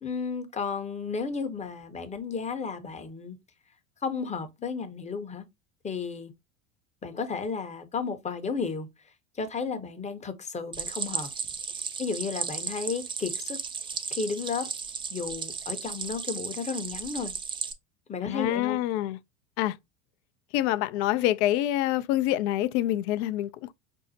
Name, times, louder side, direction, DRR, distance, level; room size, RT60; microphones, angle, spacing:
voice 1, 0.0-3.4 4.0-5.4 5.8-6.3 7.0-8.9 9.3-11.3 12.0-13.6 14.1-14.7 15.1-17.3 18.1-18.8, left 5 dB, 15° left, 0.7 m, -33 dB
Stream, 10.7-17.7, right 6 dB, 15° right, 0.3 m, -35 dB
voice 2, 18.2-19.2 19.6-19.8 20.5-23.7, left 14 dB, 55° left, 0.5 m, -26 dB
5.3 x 2.1 x 2.7 m
hypercardioid pair, 85°, 41 cm